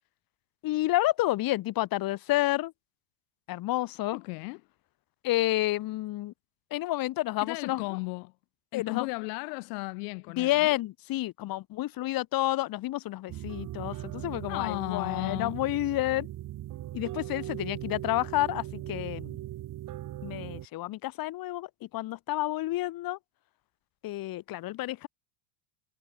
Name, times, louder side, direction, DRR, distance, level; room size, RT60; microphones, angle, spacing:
voice 1, 0.6-2.7 3.5-4.2 5.2-6.3 6.7-7.8 8.7-9.1 10.4-16.3 16.9-19.4 20.2-23.2 24.0-25.1, left 16 dB, 45° left, 3.0 m, -30 dB
voice 2, 4.1-4.6 7.4-8.3 8.7-10.7 14.5-15.5, left 33 dB, 70° left, 1.8 m, -35 dB
sound 1, 13.3-20.7, right 14 dB, 40° right, 4.0 m, -39 dB
supercardioid pair, 140°, 49 cm